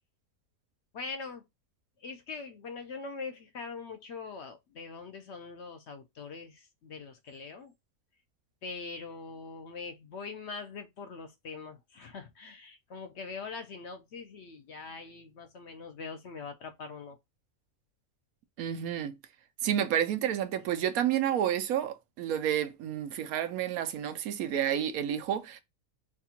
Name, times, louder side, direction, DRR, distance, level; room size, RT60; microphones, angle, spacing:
voice 1, 0.9-1.4 2.0-7.7 8.6-17.2, left 4 dB, 60° left, 0.9 m, -42 dB
voice 2, 18.6-19.2 19.6-25.6, right 10 dB, 85° right, 1.1 m, -30 dB
5.8 x 2.4 x 2.8 m
omnidirectional pair, 1.5 m